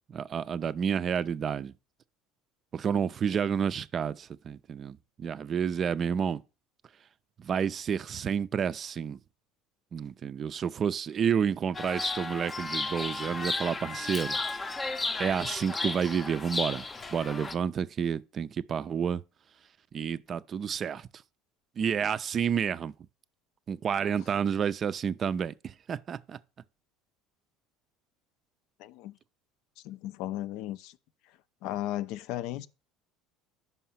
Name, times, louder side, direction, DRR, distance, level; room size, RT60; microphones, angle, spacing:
voice 1, 0.1-1.7 2.7-6.4 7.4-9.2 9.9-14.4 15.2-16.8 17.1-19.2 19.9-21.1 21.8-22.9 23.7-26.4, right 7 dB, 40° right, 0.4 m, -30 dB
Chirp tweet, 11.7-17.5, left 3 dB, 25° left, 0.6 m, -34 dB
voice 2, 28.8-29.2 29.8-31.0 31.3-32.7, left 14 dB, 65° left, 0.4 m, -36 dB
5.5 x 4.6 x 5.6 m
hypercardioid pair, 80°, 0 cm